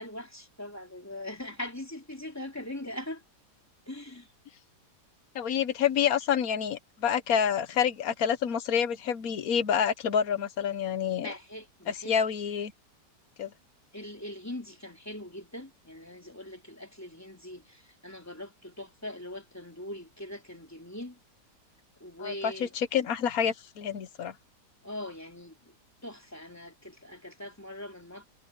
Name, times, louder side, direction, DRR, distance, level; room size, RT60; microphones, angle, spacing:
voice 1, 0.0-3.2 3.9-4.3 11.2-12.1 13.9-21.2 22.0-22.7 24.8-25.7 26.0-28.3, left 1 dB, 10° left, 3.4 m, -41 dB
voice 2, 5.3-11.3 11.9-12.7 13.4-13.5 22.2-24.3, left 8 dB, 60° left, 1.3 m, -28 dB
omnidirectional pair, 1.8 m